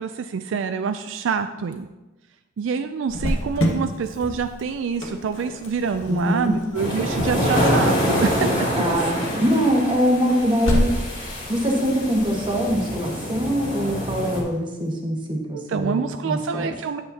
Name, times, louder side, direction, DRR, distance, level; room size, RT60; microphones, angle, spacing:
voice 1, 0.0-1.9 2.6-8.8 15.5-17.0, right 6 dB, 70° right, 9 dB, 0.3 m, -26 dB
Cricket, 3.1-14.5, equal, 90° left, 1.3 m, -31 dB
voice 2, 6.1-6.5 8.7-10.9 11.5-16.7, equal, 25° right, 0 dB, 1.4 m, -23 dB
sound 1, 6.7-14.4, equal, 40° left, 2.5 m, -25 dB
9.7 x 7.6 x 2.8 m, 1.1 s
head